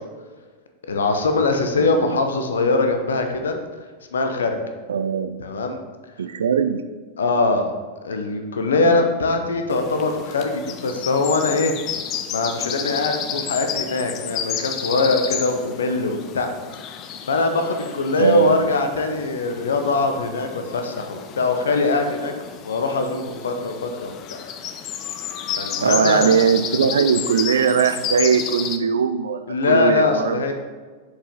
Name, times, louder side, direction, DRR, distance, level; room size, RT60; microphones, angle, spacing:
voice 1, 0.9-3.5 4.1-4.6 5.4-5.8 7.2-7.7 8.0-11.7 12.3-16.5 17.3-22.3 22.6-24.4 25.6-26.3 29.5-30.5, left 3 dB, 65° left, 5 dB, 0.7 m, -22 dB
voice 2, 1.8-2.2 4.9-5.4 6.2-6.9 8.8-9.1 18.2-18.6 25.8-29.4 29.7-30.4, right 7 dB, 65° right, 11 dB, 0.3 m, -20 dB
sound 1, 9.7-28.8, left 8 dB, 35° left, 0.4 m, -32 dB
6.8 x 4.8 x 3.7 m, 1.4 s
figure-of-eight pair, 90°, 0 cm